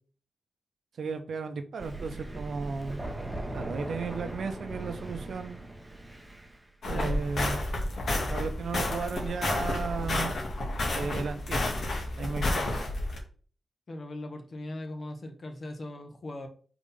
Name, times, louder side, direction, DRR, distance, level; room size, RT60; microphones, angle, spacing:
voice 1, 1.0-3.0 3.5-5.6 6.8-7.6 8.3-10.3 10.9-11.7 12.2-12.9, right 5 dB, 75° right, 8 dB, 0.8 m, -35 dB
Thunder, 1.8-6.6, right 1 dB, 15° right, 0.9 m, -39 dB
sound 1, 6.8-13.2, left 1 dB, 65° left, 1.9 m, -30 dB
voice 2, 6.9-7.3 13.9-16.5, left 1 dB, 45° left, 5 dB, 1.3 m, -39 dB
5.1 x 4.0 x 5.5 m, 0.42 s
wide cardioid pair, 130°, 0 cm